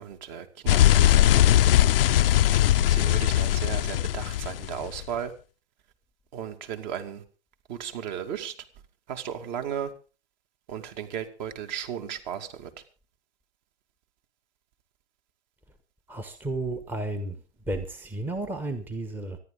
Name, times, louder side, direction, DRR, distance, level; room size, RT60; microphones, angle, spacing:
voice 1, 0.0-1.5 2.9-5.3 6.3-7.2 7.7-8.5 9.1-9.9 10.7-12.7, right 9 dB, 40° right, 7 dB, 2.4 m, -35 dB
sound 1, 0.7-5.0, left 12 dB, 55° left, 0.7 m, -20 dB
voice 2, 16.1-17.4 17.7-19.4, right 2 dB, 5° right, 9 dB, 1.1 m, -32 dB
25.5 x 10.5 x 3.8 m, 0.35 s
hypercardioid pair, 125°, 34 cm